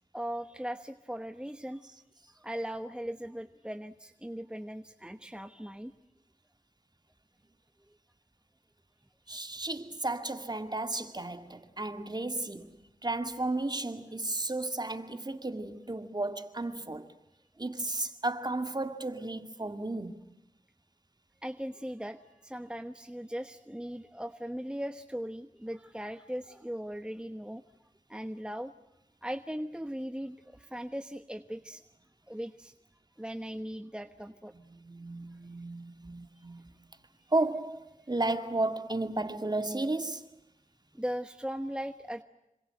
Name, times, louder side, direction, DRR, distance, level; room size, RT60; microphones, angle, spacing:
voice 1, 0.1-1.8 2.4-5.9 9.3-9.4 21.4-27.6 28.1-28.7 29.2-31.8 32.3-32.7 33.2-34.5 40.9-42.2, equal, 5° right, 1.2 m, -38 dB
voice 2, 9.3-12.8 13.0-17.1 17.6-20.2 34.7-36.7 37.3-40.2, right 2 dB, 30° right, 2.3 m, -33 dB
27.0 x 26.0 x 7.8 m
wide cardioid pair, 50°, 14 cm